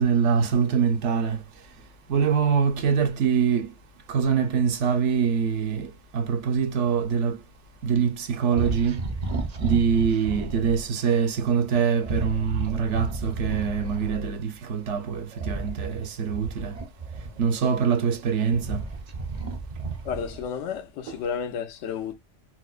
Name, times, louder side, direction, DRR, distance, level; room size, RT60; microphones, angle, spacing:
voice 1, 0.0-1.4 2.1-3.7 4.1-7.4 7.8-9.0 9.6-16.8 17.4-18.9 21.1-21.2, right 6 dB, 70° right, 0.9 m, -24 dB
sound 1, 8.5-10.8 12.0-14.3 15.3-17.6 18.2-20.6, right 3 dB, 45° right, 0.6 m, -33 dB
voice 2, 20.0-22.1, left 7 dB, 80° left, 1.0 m, -31 dB
4.3 x 2.1 x 2.3 m
omnidirectional pair, 1.3 m